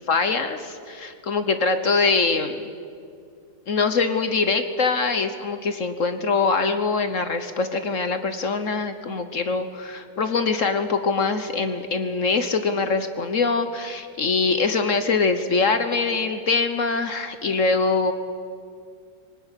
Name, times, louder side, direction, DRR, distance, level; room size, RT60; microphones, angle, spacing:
voice 1, 0.1-2.7 3.7-18.1, left 4 dB, 50° left, 9 dB, 1.2 m, -23 dB
20.5 x 18.0 x 9.9 m, 2.3 s
omnidirectional pair, 2.0 m